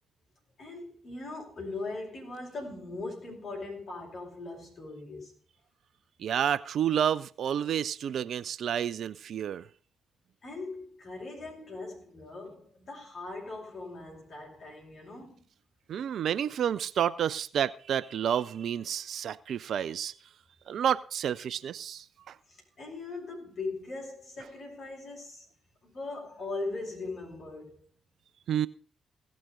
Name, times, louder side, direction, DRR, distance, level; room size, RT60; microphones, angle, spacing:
voice 1, 0.6-5.3 10.4-15.5 22.5-25.5 25.8-27.9, left 3 dB, 55° left, 5.1 m, -40 dB
voice 2, 6.2-9.6 15.9-20.1 20.7-22.3 28.5-28.7, right 9 dB, 60° right, 0.4 m, -30 dB
17.0 x 6.2 x 5.1 m
hypercardioid pair, 40°, 0 cm